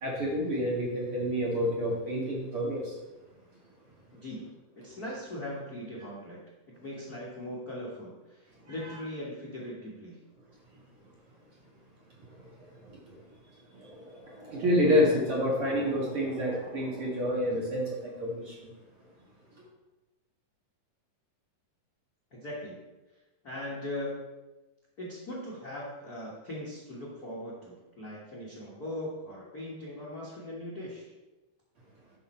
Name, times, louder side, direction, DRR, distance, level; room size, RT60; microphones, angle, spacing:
voice 1, 0.0-3.0 12.2-12.5 12.8-13.2 13.7-18.5, equal, 50° right, -3 dB, 2.1 m, -29 dB
voice 2, 4.8-6.4 6.8-10.2 22.3-22.8 23.4-24.2 25.0-31.1, left 1 dB, 45° left, -4 dB, 1.2 m, -39 dB
11.5 x 6.0 x 4.3 m, 1.1 s
omnidirectional pair, 3.9 m